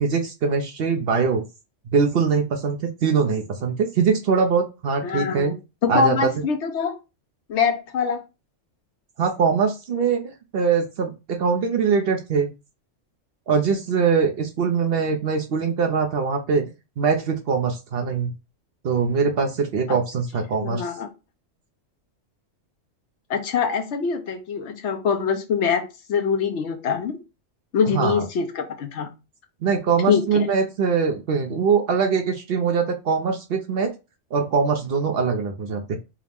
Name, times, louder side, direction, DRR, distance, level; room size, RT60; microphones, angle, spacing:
voice 1, 0.0-1.4 1.9-5.5 5.9-6.2 9.2-10.2 10.5-12.5 13.5-16.7 17.0-18.3 18.8-20.9 27.9-28.3 29.6-33.9 34.3-36.0, right 5 dB, 60° right, 4 dB, 0.7 m, -22 dB
voice 2, 5.0-5.6 5.8-6.9 7.5-8.2 19.9-20.0 20.6-21.1 23.3-25.8 26.1-27.1 27.7-29.1 30.1-30.5, left 6 dB, 70° left, 7 dB, 0.9 m, -24 dB
4.7 x 2.0 x 3.4 m, 0.27 s
omnidirectional pair, 1.3 m